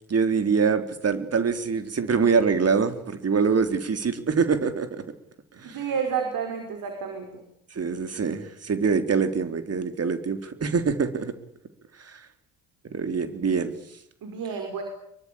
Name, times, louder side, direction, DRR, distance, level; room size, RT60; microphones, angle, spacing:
voice 1, 0.1-5.0 5.6-5.8 7.7-11.3 12.0-12.2 12.9-13.7, right 5 dB, 35° right, 9 dB, 3.9 m, -24 dB
voice 2, 5.6-7.4 14.2-14.8, right 6 dB, 50° right, 5 dB, 5.7 m, -30 dB
25.0 x 23.5 x 8.8 m, 0.75 s
figure-of-eight pair, 50°, 42 cm